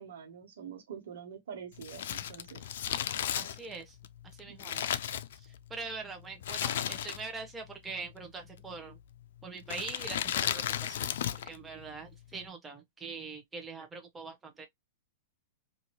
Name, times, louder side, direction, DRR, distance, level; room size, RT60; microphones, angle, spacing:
voice 1, 0.0-2.6 4.5-4.9, right 7 dB, 75° right, 1.1 m, -46 dB
Crumpling crinkling, 1.8-5.8 6.4-7.5 7.7-7.8 8.6-9.0 9.6-11.6 11.8-11.9, left 10 dB, 70° left, 0.4 m, -34 dB
voice 2, 3.3-4.0 4.4-4.8 5.3-9.0 9.4-11.1 11.5-14.7, right 4 dB, 15° right, 0.7 m, -43 dB
2.7 x 2.5 x 3.0 m
hypercardioid pair, 135°, 0 cm